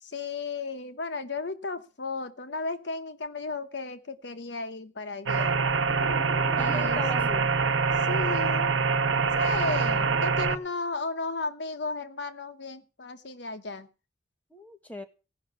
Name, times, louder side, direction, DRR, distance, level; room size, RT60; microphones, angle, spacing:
voice 1, 0.0-5.6 6.6-7.3 7.9-8.7 9.3-13.9, left 3 dB, 65° left, 10 dB, 1.1 m, -34 dB
sound 1, 5.3-10.6, right 5 dB, 90° right, 1.0 m, -25 dB
Explosion, 5.9-7.7, left 1 dB, 50° left, 2.9 m, -42 dB
voice 2, 6.2-7.5 14.5-15.0, left 2 dB, 10° left, 4 dB, 1.5 m, -39 dB
17.0 x 5.8 x 8.0 m, 0.33 s
head